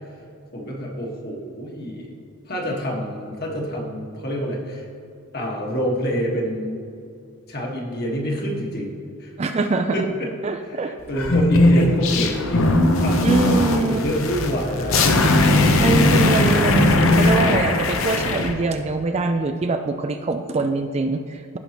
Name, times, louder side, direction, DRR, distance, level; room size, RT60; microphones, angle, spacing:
voice 1, 0.5-2.1 2.5-4.8 5.3-7.0 7.5-8.9 9.2-9.3 9.9-10.3 10.7-15.1, equal, 45° left, -1 dB, 1.6 m, -27 dB
voice 2, 9.4-10.0 10.4-11.0 13.2-14.0 15.8-21.6, right 3 dB, 30° right, 7 dB, 0.3 m, -23 dB
sound 1, 11.1-18.5, left 2 dB, 65° left, 0.8 m, -18 dB
15.5 x 5.6 x 3.0 m, 2.5 s
head